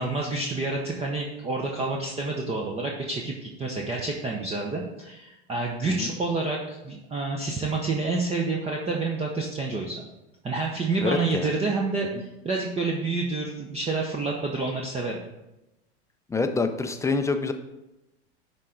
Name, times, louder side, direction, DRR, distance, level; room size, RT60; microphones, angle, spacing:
voice 1, 0.0-10.0 10.4-15.2, right 3 dB, 20° right, 0 dB, 0.9 m, -28 dB
voice 2, 11.0-11.5 16.3-17.5, left 3 dB, 10° left, 7 dB, 0.5 m, -26 dB
10.5 x 3.8 x 3.9 m, 0.96 s
hypercardioid pair, 90°, 34 cm